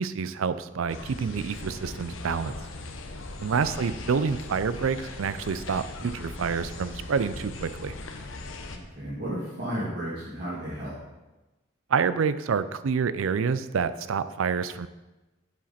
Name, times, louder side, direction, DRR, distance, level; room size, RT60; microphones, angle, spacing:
voice 1, 0.0-2.6 3.4-7.9 11.9-14.9, right 6 dB, 90° right, 14 dB, 0.4 m, -28 dB
sound 1, 0.9-8.8, left 2 dB, 75° left, 0.8 m, -39 dB
voice 2, 8.7-10.9, equal, 50° right, -9 dB, 2.1 m, -34 dB
7.4 x 7.3 x 4.2 m, 1.1 s
head